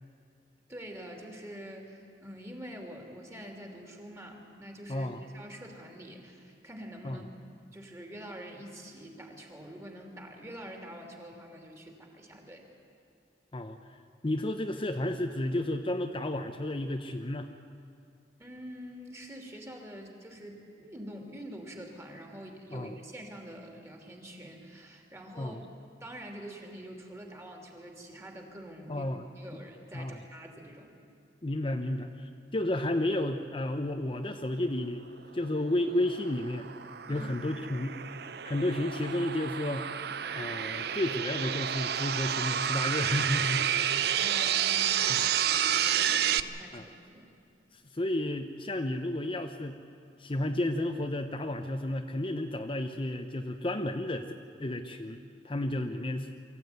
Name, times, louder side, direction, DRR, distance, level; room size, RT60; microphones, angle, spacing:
voice 1, 0.7-7.3 7.7-12.6 18.4-25.6 26.0-29.1 29.4-30.9 37.1-37.3 43.9-47.3, equal, 15° right, 1 dB, 2.9 m, -46 dB
voice 2, 4.9-5.2 7.0-7.2 13.5-13.8 14.2-17.5 22.7-22.9 25.4-25.6 28.9-29.2 29.9-30.2 31.4-35.1 35.3-36.7 37.1-38.0 38.4-39.9 40.3-43.7 45.1-45.2 46.7-46.8 47.7-49.8 50.2-54.3 54.6-56.3, left 1 dB, 30° left, 5 dB, 0.8 m, -32 dB
sound 1, 35.6-46.4, right 9 dB, 65° right, 0.6 m, -30 dB
24.0 x 15.0 x 9.4 m, 2.4 s
head